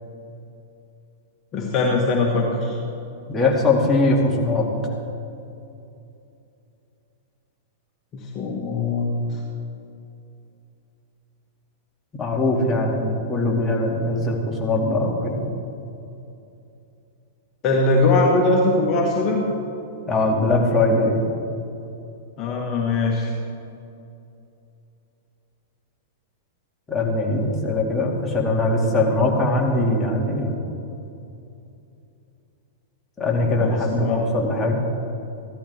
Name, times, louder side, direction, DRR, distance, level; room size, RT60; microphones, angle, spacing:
voice 1, 1.5-2.8 8.1-9.4 17.6-19.4 22.4-23.3 33.6-34.2, left 2 dB, 35° left, -1 dB, 1.7 m, -21 dB
voice 2, 3.3-4.7 12.1-15.4 20.1-21.2 26.9-30.6 33.2-34.8, left 2 dB, 15° left, -2 dB, 2.3 m, -21 dB
15.0 x 13.0 x 3.6 m, 2.7 s
hypercardioid pair, 105°, 0 cm